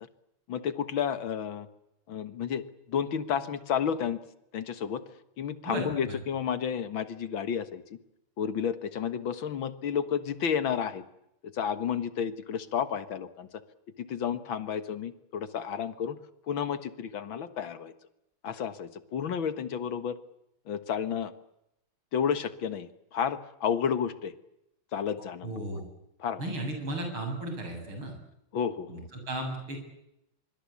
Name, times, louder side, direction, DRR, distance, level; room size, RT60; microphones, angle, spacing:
voice 1, 0.5-1.7 2.1-4.2 4.5-5.0 5.4-7.8 8.4-11.0 11.4-13.5 14.0-16.2 16.5-17.9 18.4-20.2 20.7-21.3 22.1-24.3 24.9-25.6 26.2-26.4 28.5-29.1, left 7 dB, 70° left, 12 dB, 2.3 m, -31 dB
voice 2, 5.6-6.2 25.4-25.8 26.4-28.1 28.9-29.8, right 1 dB, 75° right, 4 dB, 8.4 m, -35 dB
25.0 x 24.0 x 8.5 m, 0.83 s
omnidirectional pair, 2.3 m